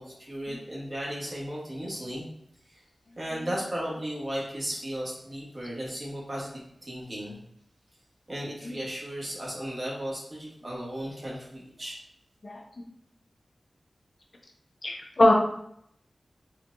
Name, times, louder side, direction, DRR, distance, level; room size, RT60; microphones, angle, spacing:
voice 1, 0.0-2.3 2.7-2.8 3.2-7.4 8.3-12.0, equal, 35° right, -5 dB, 1.4 m, -35 dB
voice 2, 12.4-12.9 14.8-15.3, left 1 dB, 50° left, 1 dB, 0.5 m, -22 dB
4.4 x 2.4 x 2.5 m, 0.72 s
wide cardioid pair, 65°, 0 cm